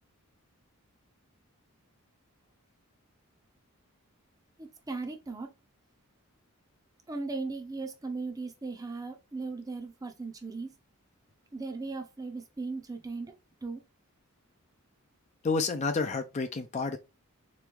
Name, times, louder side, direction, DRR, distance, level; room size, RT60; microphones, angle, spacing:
voice 1, 4.6-5.5 7.1-10.7 11.5-13.3 13.6-13.8, right 3 dB, 15° right, 0.5 m, -37 dB
voice 2, 15.4-17.0, left 4 dB, 30° left, 0.4 m, -29 dB
3.7 x 3.1 x 3.4 m
head